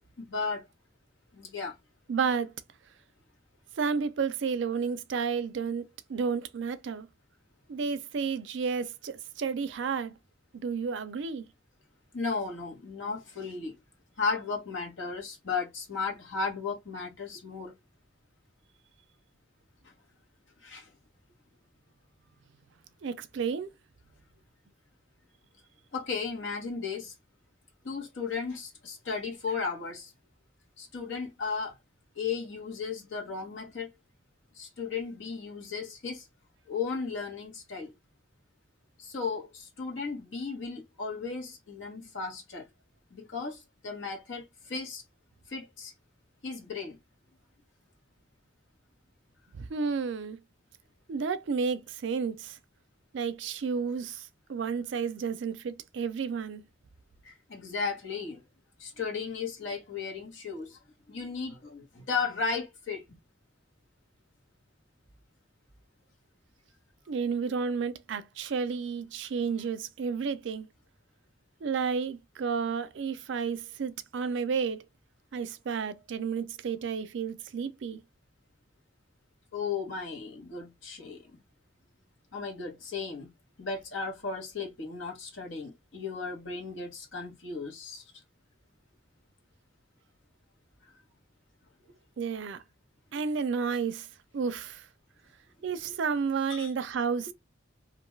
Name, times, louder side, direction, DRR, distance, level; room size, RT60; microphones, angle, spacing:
voice 1, 0.2-0.7 1.3-1.7 12.1-13.8 14.2-17.8 19.8-19.9 20.6-20.9 25.9-27.1 27.8-30.1 30.8-31.8 32.1-33.9 34.5-36.3 36.7-37.9 39.0-42.7 43.1-45.0 45.5-45.9 46.4-47.0 57.2-58.4 58.8-60.8 61.1-63.2 79.5-81.3 82.3-83.3 83.6-88.0 95.8-95.9 96.5-96.7, left 5 dB, 70° left, 1.2 m, -35 dB
voice 2, 2.1-2.5 3.8-5.8 6.1-7.1 7.7-10.1 10.5-11.4 23.0-23.7 49.5-50.4 51.1-52.6 53.1-56.6 67.1-70.7 71.6-74.8 75.3-78.0 92.2-92.6 93.1-94.1 94.3-94.8 95.6-97.3, right 5 dB, 60° right, 0.4 m, -31 dB
2.5 x 2.3 x 3.1 m
head